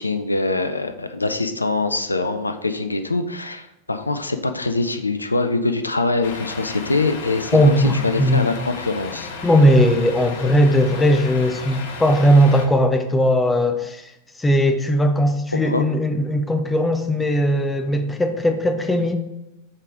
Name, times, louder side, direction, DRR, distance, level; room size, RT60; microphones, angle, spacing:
voice 1, 0.0-9.3 15.7-15.8, left 3 dB, 80° left, 9 dB, 0.4 m, -23 dB
Truck, 6.2-12.7, left 4 dB, 55° left, 0.9 m, -34 dB
voice 2, 7.5-8.5 9.4-14.1 14.4-19.2, equal, 10° left, 7 dB, 0.7 m, -18 dB
6.5 x 3.6 x 4.7 m, 0.90 s
figure-of-eight pair, 90°, 0 cm